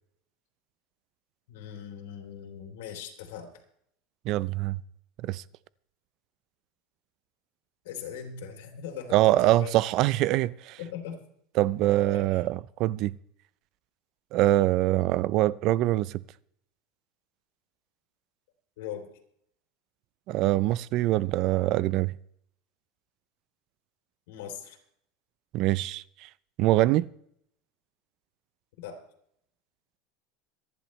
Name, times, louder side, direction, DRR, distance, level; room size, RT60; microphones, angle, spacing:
voice 1, 1.5-3.5 7.8-9.7 10.8-11.2 12.1-12.4 18.8-19.1 24.3-24.8 28.8-29.0, left 8 dB, 80° left, 3.2 m, -40 dB
voice 2, 4.2-4.8 5.2-5.4 9.1-10.8 11.6-13.1 14.3-16.2 20.3-22.1 25.5-26.3 26.6-27.1, right 16 dB, 45° right, 0.5 m, -24 dB
26.5 x 10.5 x 3.2 m
supercardioid pair, 145°, 0 cm